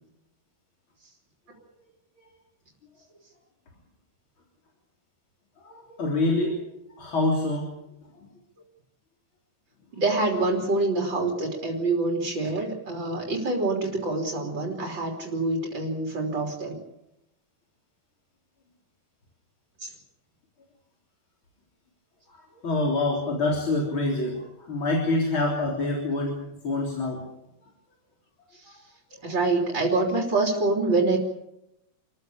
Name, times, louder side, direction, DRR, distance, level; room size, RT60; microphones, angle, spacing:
voice 1, 5.6-6.6 7.0-7.7 22.3-27.2 29.2-29.4, left 2 dB, 85° left, 0 dB, 4.4 m, -26 dB
voice 2, 9.9-16.8 19.8-19.9 28.5-28.8 29.2-31.2, right 2 dB, 65° right, 1 dB, 3.9 m, -26 dB
28.5 x 15.0 x 8.6 m, 0.88 s
omnidirectional pair, 2.2 m